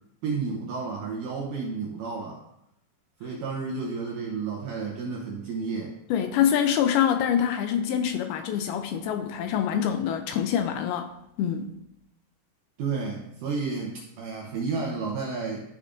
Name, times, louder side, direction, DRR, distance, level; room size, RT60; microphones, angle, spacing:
voice 1, 0.2-2.4 3.2-6.0 12.8-15.6, right 4 dB, 80° right, -1 dB, 1.9 m, -31 dB
voice 2, 6.1-11.1 11.4-11.7, left 9 dB, 80° left, 7 dB, 2.3 m, -25 dB
13.0 x 6.7 x 2.5 m, 0.83 s
omnidirectional pair, 4.8 m